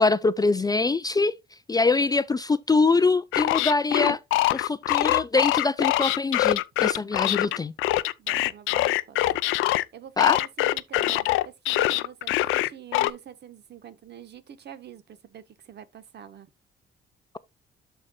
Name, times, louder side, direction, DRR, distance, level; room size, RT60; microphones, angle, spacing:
voice 1, 0.0-1.3 1.7-4.2 4.5-7.7 10.2-10.4, left 3 dB, 20° left, 0.4 m, -23 dB
sound 1, 3.3-9.8 10.2-13.1, left 16 dB, 90° left, 0.4 m, -23 dB
voice 2, 8.2-9.2 9.9-16.5, right 9 dB, 60° right, 1.1 m, -45 dB
13.0 x 4.4 x 2.2 m
cardioid pair, 90°, 20 cm